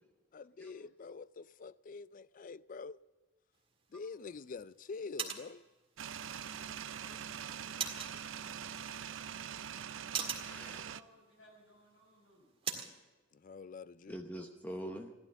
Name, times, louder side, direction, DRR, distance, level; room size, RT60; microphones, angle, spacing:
voice 1, 0.3-3.0 3.9-5.6 13.3-14.2, left 4 dB, 45° left, 0.4 m, -46 dB
sound 1, 3.5-13.0, right 7 dB, 30° right, 1.9 m, -45 dB
sound 2, 6.0-11.0, right 8 dB, 85° right, 0.5 m, -43 dB
voice 2, 7.0-7.5 8.0-8.3 10.4-10.8 14.1-15.1, equal, 10° left, 0.8 m, -47 dB
voice 3, 10.4-12.5, left 1 dB, 85° left, 6.5 m, -62 dB
15.0 x 12.0 x 7.2 m
head